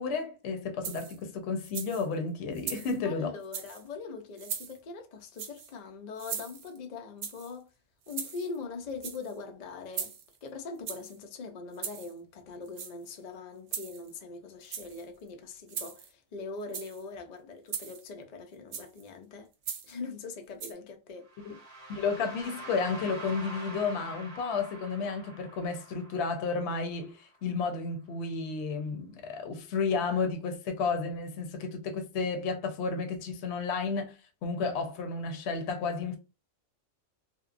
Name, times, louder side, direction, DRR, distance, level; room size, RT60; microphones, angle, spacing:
voice 1, 0.0-3.3 21.5-21.6 21.9-36.2, left 4 dB, 65° left, 0.8 m, -32 dB
sound 1, 0.8-1.2 1.6-2.1 2.5-3.0 3.4-3.8 4.4-4.8 5.3-5.7 6.2-6.8 7.2-7.5 8.1-8.6 8.9-9.3 9.9-10.4 10.9-11.2 11.7-12.1 12.7-13.1 13.7-14.2 14.6-15.0 15.7-16.1 16.6-17.0 17.7-18.1 18.7-19.0 19.6-20.0 20.6-20.7, right 7 dB, 70° right, 0.8 m, -39 dB
voice 2, 3.0-7.7 8.1-10.1 10.4-19.5 19.8-21.3, left 4 dB, 85° left, 0.3 m, -42 dB
sound 2, 21.3-27.2, right 2 dB, 35° right, 0.7 m, -46 dB
2.9 x 2.1 x 2.4 m
omnidirectional pair, 1.3 m